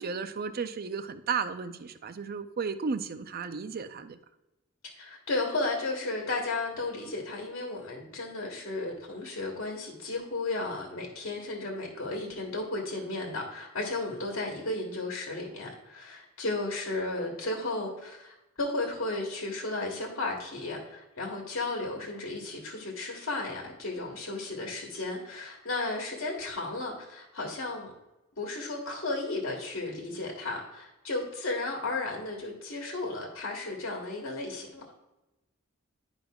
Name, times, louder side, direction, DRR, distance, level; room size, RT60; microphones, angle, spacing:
voice 1, 0.0-4.2, right 5 dB, 50° right, 10 dB, 0.5 m, -34 dB
voice 2, 5.0-27.9 28.4-34.9, left 2 dB, 85° left, 0 dB, 1.3 m, -34 dB
10.0 x 5.2 x 2.3 m, 0.98 s
head